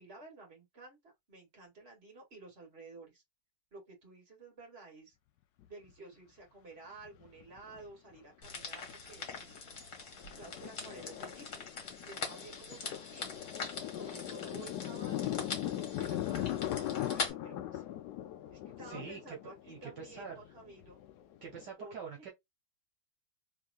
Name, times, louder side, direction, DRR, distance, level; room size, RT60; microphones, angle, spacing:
voice 1, 0.0-3.2 3.7-5.2 5.7-9.6 10.3-11.7 12.0-13.4 13.9-17.6 18.5-21.0 21.8-22.3, right 3 dB, 35° right, 2.2 m, -53 dB
Thunder, 5.6-5.7 7.1-8.1 8.6-8.9 9.3-21.7, left 13 dB, 75° left, 1.0 m, -40 dB
sound 1, 8.4-17.3, left 4 dB, 45° left, 1.7 m, -43 dB
voice 2, 18.9-19.4 19.7-20.3 21.4-22.3, right 6 dB, 65° right, 1.7 m, -45 dB
3.6 x 3.4 x 2.4 m
omnidirectional pair, 2.1 m